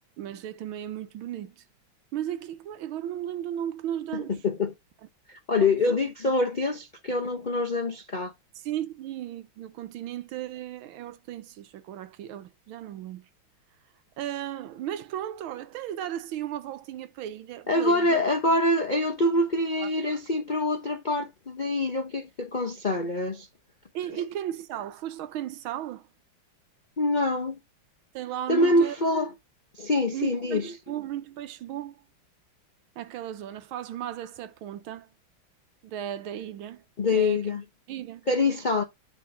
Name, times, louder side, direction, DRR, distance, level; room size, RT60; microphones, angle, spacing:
voice 1, 0.2-1.6 2.1-4.3 5.5-6.0 8.6-13.2 14.2-18.2 19.8-19.9 23.9-26.1 28.1-29.0 30.1-32.0 33.0-35.1 35.8-36.8 37.1-37.4 37.9-38.3, right 11 dB, 80° right, 1.6 m, -35 dB
voice 2, 4.1-4.7 5.3-8.3 17.7-23.5 27.0-27.6 28.5-29.3 29.7-30.8 37.0-37.6 38.3-38.8, left 2 dB, 75° left, 0.4 m, -25 dB
11.0 x 4.1 x 2.6 m
omnidirectional pair, 2.2 m